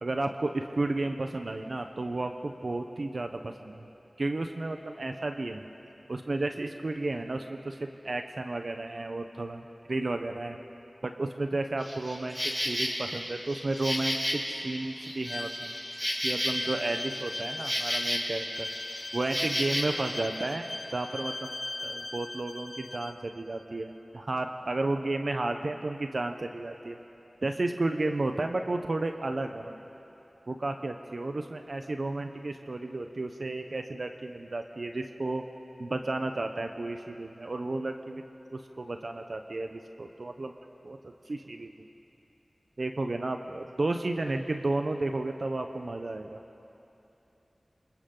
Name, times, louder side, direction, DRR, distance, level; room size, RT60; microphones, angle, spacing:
voice 1, 0.0-3.9 4.2-5.7 6.1-10.6 11.0-12.4 12.6-15.7 16.2-18.7 19.1-21.6 21.8-27.0 27.4-29.7 30.5-35.4 35.8-38.2 38.5-40.5 40.8-41.7 42.8-46.4, right 2 dB, 65° right, 5 dB, 0.9 m, -32 dB
Insect, 11.8-19.8, equal, ahead, 6.7 m, -33 dB
Bowed string instrument, 15.3-23.2, left 2 dB, 65° left, 1.7 m, -39 dB
28.5 x 26.5 x 3.9 m, 2.9 s
wide cardioid pair, 45°, 0 cm